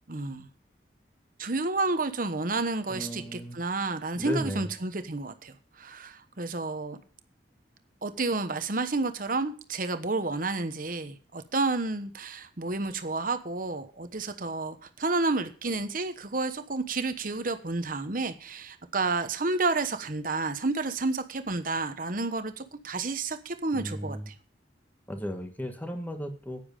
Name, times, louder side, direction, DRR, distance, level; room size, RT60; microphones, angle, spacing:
voice 1, 0.1-0.5 1.4-7.0 8.0-24.3, right 3 dB, 45° right, 9 dB, 1.1 m, -30 dB
voice 2, 2.9-3.6 4.1-4.7 23.7-24.3 25.1-26.6, equal, 10° left, 5 dB, 1.4 m, -35 dB
10.0 x 9.6 x 5.3 m, 0.40 s
head